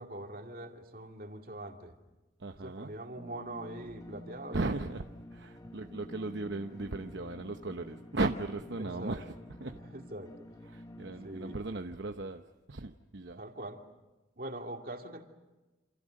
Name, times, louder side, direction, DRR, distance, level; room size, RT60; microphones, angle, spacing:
voice 1, 0.0-2.0 2.6-4.7 8.8-9.2 9.8-10.4 11.2-11.6 13.4-13.8 14.4-15.2, right 1 dB, 50° right, 2.5 m, -43 dB
voice 2, 2.4-3.0 4.5-9.3 9.6-9.8 10.7-13.4, right 2 dB, 70° right, 0.9 m, -37 dB
sound 1, 3.1-11.6, left 1 dB, 20° left, 1.1 m, -50 dB
28.5 x 27.5 x 6.5 m
head